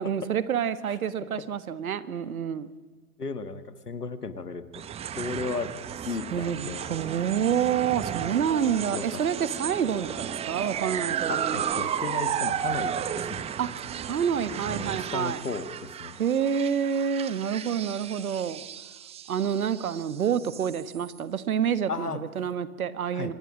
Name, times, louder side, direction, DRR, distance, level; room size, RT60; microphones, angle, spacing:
voice 1, 0.0-2.7 6.3-11.9 13.6-13.7 14.0-15.4 16.2-18.6 19.3-23.3, right 8 dB, 70° right, 15 dB, 1.5 m, -28 dB
voice 2, 3.2-4.9 5.2-5.7 6.1-6.9 8.9-9.2 11.3-13.5 14.7-16.2 21.9-22.2 23.1-23.3, left 4 dB, 85° left, 12 dB, 1.8 m, -35 dB
sound 1, 4.7-21.2, right 9 dB, 15° right, 0.8 m, -34 dB
25.5 x 21.5 x 6.3 m, 1.3 s
figure-of-eight pair, 110°, 45 cm